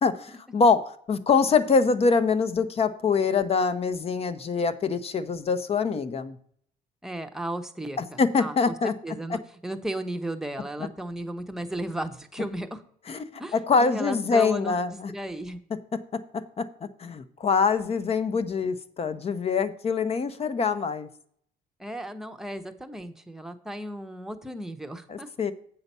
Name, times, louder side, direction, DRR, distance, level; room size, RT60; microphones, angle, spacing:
voice 1, 0.0-6.4 8.0-8.9 13.1-15.1 16.1-16.7 17.0-21.1 25.1-25.5, left 5 dB, 35° left, 13 dB, 0.8 m, -24 dB
voice 2, 7.0-12.8 13.4-15.6 21.8-25.3, right 1 dB, 5° right, 5 dB, 0.8 m, -35 dB
8.2 x 5.7 x 5.4 m, 0.63 s
cardioid pair, 110°, 17 cm